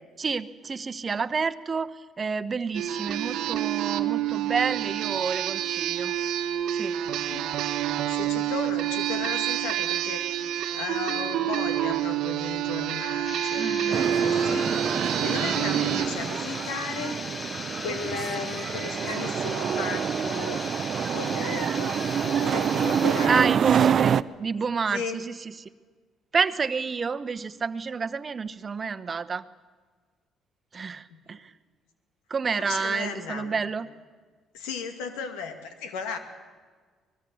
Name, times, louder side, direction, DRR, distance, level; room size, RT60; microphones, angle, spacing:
voice 1, 0.2-6.2 6.7-7.0 13.6-14.1 15.8-15.9 23.3-25.7 26.3-29.5 30.7-31.5 32.3-33.9, right 5 dB, 40° right, 11 dB, 1.0 m, -29 dB
sound 1, 2.7-16.1, right 11 dB, 75° right, 1.2 m, -28 dB
voice 2, 8.1-10.2 10.8-14.8 15.0-17.3 17.8-20.7 21.1-23.5 23.8-24.1 24.9-25.2 31.1-31.4 32.6-33.6 34.5-36.2, left 5 dB, 85° left, 8 dB, 2.3 m, -35 dB
sound 2, 13.2-23.3, left 4 dB, 35° left, 0.8 m, -38 dB
sound 3, 13.9-24.2, right 8 dB, 55° right, 0.6 m, -27 dB
24.0 x 20.5 x 7.1 m, 1.5 s
supercardioid pair, 70°, 0 cm